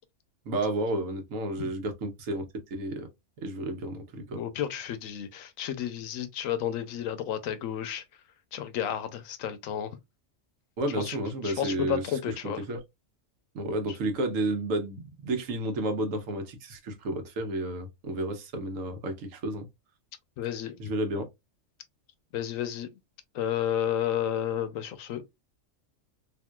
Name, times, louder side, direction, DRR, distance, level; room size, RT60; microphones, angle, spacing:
voice 1, 0.5-3.1 3.4-4.4 10.8-12.0 12.7-12.8 13.5-19.7 20.8-21.3, right 1 dB, 80° right, 1.2 m, -31 dB
voice 2, 4.3-8.0 8.5-10.0 10.9-11.2 11.4-12.6 20.4-20.8 22.3-22.9 23.3-25.2, left 10 dB, 85° left, 1.0 m, -32 dB
3.7 x 2.5 x 2.2 m
omnidirectional pair, 1.4 m